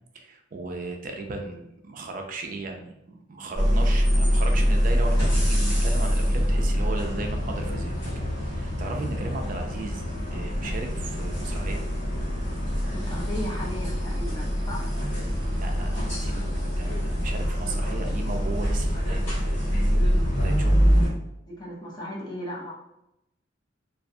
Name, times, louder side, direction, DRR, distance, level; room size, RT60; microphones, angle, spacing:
voice 1, 0.1-7.9 8.4-10.0 10.3-11.8 15.6-19.9 20.4-20.9, right 3 dB, 45° right, 3 dB, 0.3 m, -36 dB
sound 1, 3.5-21.1, equal, 65° left, 1.1 m, -25 dB
voice 2, 12.8-14.9 21.5-22.7, left 1 dB, 20° left, -4 dB, 0.5 m, -36 dB
2.3 x 2.1 x 2.6 m, 0.84 s
head